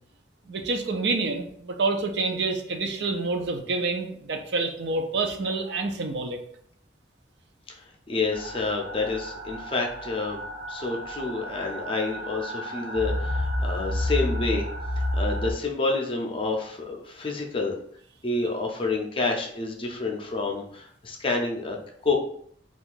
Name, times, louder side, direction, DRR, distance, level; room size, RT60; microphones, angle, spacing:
voice 1, 0.5-6.4, right 3 dB, 65° right, 4 dB, 0.5 m, -28 dB
voice 2, 8.1-10.4 10.7-14.7 15.1-17.8 18.2-21.8 22.0-22.2, left 3 dB, 30° left, 1 dB, 0.5 m, -28 dB
sound 1, 8.3-15.5, equal, 85° right, 1.0 m, -31 dB
2.7 x 2.4 x 3.7 m, 0.64 s
head